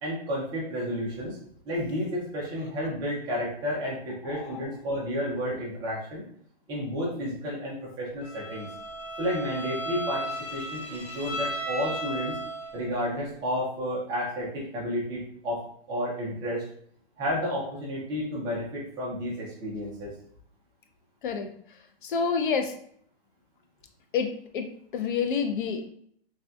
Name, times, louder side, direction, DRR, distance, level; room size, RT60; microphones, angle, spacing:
voice 1, 0.0-1.4 1.7-6.2 6.7-8.7 9.2-12.4 12.7-16.7 17.2-20.1, equal, 15° right, -5 dB, 0.5 m, -31 dB
voice 2, 4.2-4.7 21.2-21.5 22.0-22.7 24.1-25.9, left 6 dB, 55° left, 6 dB, 0.4 m, -29 dB
Bowed string instrument, 8.2-12.9, right 1 dB, 85° left, 1.2 m, -35 dB
3.3 x 2.6 x 2.2 m, 0.63 s
hypercardioid pair, 150°, 31 cm